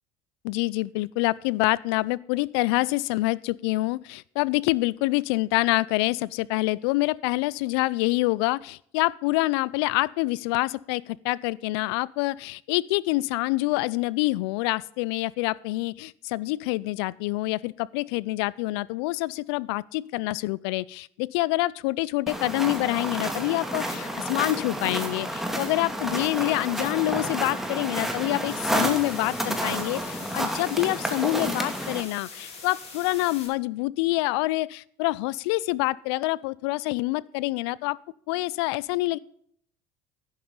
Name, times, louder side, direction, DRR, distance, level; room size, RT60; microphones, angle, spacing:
voice 1, 0.4-38.0 38.3-39.2, left 20 dB, 75° left, 22 dB, 0.4 m, -26 dB
sound 1, 22.3-32.0, right 1 dB, ahead, 2.3 m, -30 dB
sound 2, 28.5-33.5, left 4 dB, 55° left, 5.4 m, -43 dB
11.0 x 10.5 x 3.8 m, 0.64 s
hypercardioid pair, 70°, 14 cm